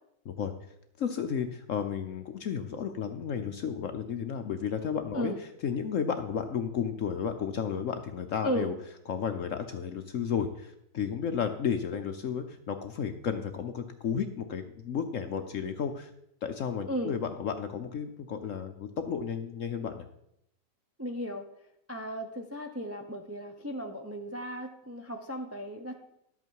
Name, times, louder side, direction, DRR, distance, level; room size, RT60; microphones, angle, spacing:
voice 1, 1.0-5.3 5.6-8.7 9.1-16.1 16.4-20.1, left 7 dB, 60° left, 7 dB, 0.8 m, -33 dB
voice 2, 21.0-21.5 21.9-25.9, equal, 20° right, 3 dB, 0.4 m, -35 dB
11.5 x 8.2 x 4.6 m, 0.77 s
omnidirectional pair, 1.9 m